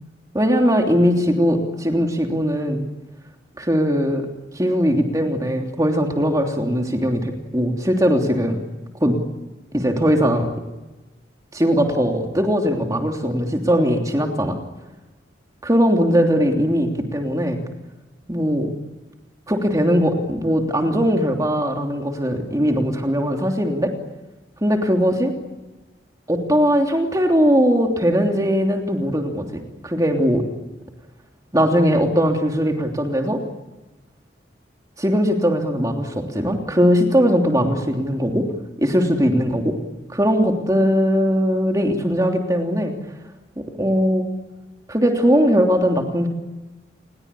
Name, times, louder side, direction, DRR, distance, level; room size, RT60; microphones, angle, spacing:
voice 1, 0.3-2.8 3.6-4.2 4.5-8.6 9.0-9.2 9.7-10.5 11.5-14.6 15.6-17.6 18.3-18.7 19.5-23.9 24.6-25.3 26.3-30.4 31.5-33.4 35.0-38.4 38.8-39.7 40.1-42.9 43.8-44.2 44.9-46.3, equal, 20° right, 2 dB, 3.1 m, -19 dB
29.5 x 21.5 x 8.5 m, 1.1 s
head